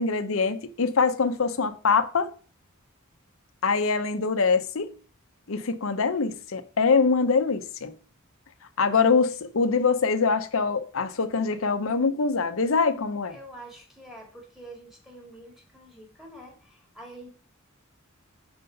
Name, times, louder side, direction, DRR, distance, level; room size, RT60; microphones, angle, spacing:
voice 1, 0.0-2.3 3.6-4.9 5.5-8.0 8.8-13.3, left 4 dB, 65° left, 0.7 m, -24 dB
voice 2, 13.3-17.3, right 1 dB, ahead, 2.0 m, -46 dB
5.4 x 4.4 x 5.6 m
head